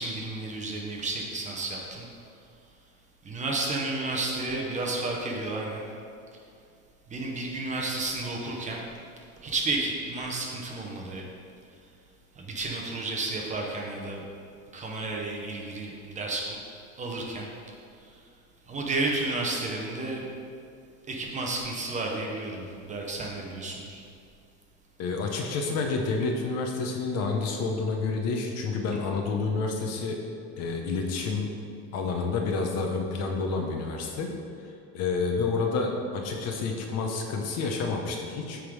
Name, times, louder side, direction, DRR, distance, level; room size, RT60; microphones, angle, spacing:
voice 1, 0.0-2.0 3.2-5.9 7.1-8.9 9.4-11.2 12.4-14.3 14.7-16.6 17.0-17.5 18.0-18.1 18.7-20.3 21.1-24.0, right 2 dB, 20° right, -1 dB, 0.8 m, -32 dB
voice 2, 25.0-30.2 30.6-31.5 31.9-34.3 34.6-38.6, left 4 dB, 45° left, 2 dB, 0.9 m, -29 dB
8.5 x 3.8 x 4.7 m, 2.4 s
cardioid pair, 145°, 34 cm